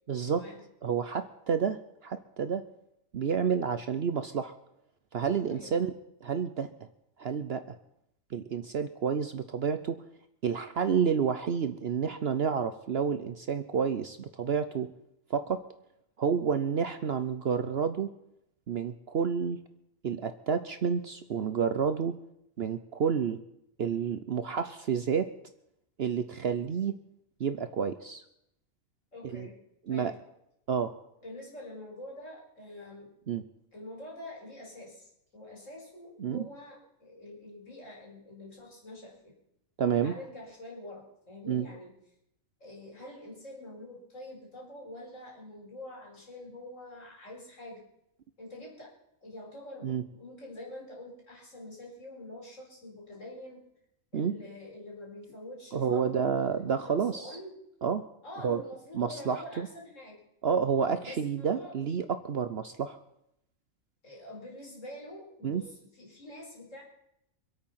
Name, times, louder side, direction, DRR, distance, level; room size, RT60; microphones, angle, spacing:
voice 1, 0.1-0.5 0.8-2.6 3.1-4.5 5.1-5.9 6.2-6.7 7.2-7.6 8.3-10.0 10.4-14.9 15.3-15.6 16.2-18.1 18.7-19.6 20.0-22.2 22.6-23.4 23.8-25.3 26.0-27.0 27.4-28.2 29.3-29.5 29.9-30.1 30.7-30.9 33.3-33.4 36.2-36.4 39.8-40.1 41.5-41.7 49.8-50.0 54.1-54.3 55.7-57.4 57.8-58.0 58.4-58.6 58.9-59.7 60.4-63.0 65.4-65.6, right 6 dB, 55° right, 10 dB, 0.9 m, -29 dB
voice 2, 5.5-5.8 29.1-29.6 29.9-30.2 31.2-33.1 33.7-39.3 40.0-42.0 42.6-47.9 48.4-48.9 49.2-53.6 54.1-57.6 58.2-60.2 61.0-61.7 64.0-66.8, left 1 dB, 65° left, -2 dB, 5.1 m, -46 dB
25.0 x 8.7 x 5.7 m, 0.79 s
omnidirectional pair, 1.4 m